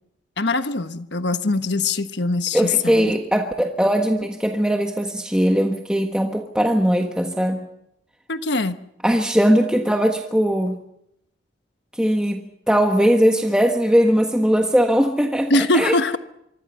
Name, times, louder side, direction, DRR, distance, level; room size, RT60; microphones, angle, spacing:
voice 1, 0.4-3.1 8.3-8.8 15.5-16.2, left 3 dB, 60° left, 9 dB, 1.3 m, -22 dB
voice 2, 2.5-7.7 9.0-10.8 11.9-12.4 12.7-16.0, equal, 5° right, 3 dB, 1.4 m, -19 dB
26.0 x 24.5 x 5.7 m, 0.78 s
head